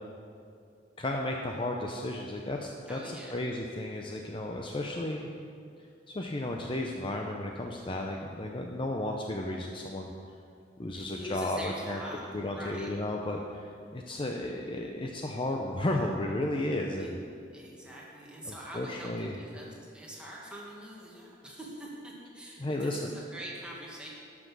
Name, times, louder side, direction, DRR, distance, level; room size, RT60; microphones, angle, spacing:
voice 1, 1.0-5.3 6.1-10.1 10.8-12.0 12.3-17.1 18.4-19.4 22.6-23.1, left 1 dB, 30° left, 1 dB, 0.6 m, -33 dB
voice 2, 2.9-3.3 10.9-12.9 17.0-17.2 17.5-24.1, right 1 dB, 5° right, -5 dB, 2.0 m, -44 dB
12.0 x 6.1 x 6.2 m, 2.4 s
head